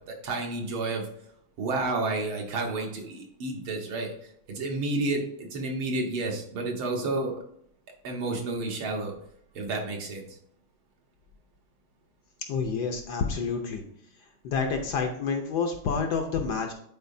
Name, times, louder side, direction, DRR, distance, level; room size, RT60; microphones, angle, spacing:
voice 1, 0.1-1.0 1.6-4.1 4.5-7.4 8.0-9.1 9.6-10.3, right 2 dB, 80° right, 1 dB, 2.1 m, -30 dB
voice 2, 12.5-13.8 14.4-16.7, left 5 dB, 65° left, 4 dB, 1.2 m, -28 dB
10.0 x 4.5 x 2.7 m, 0.71 s
omnidirectional pair, 2.3 m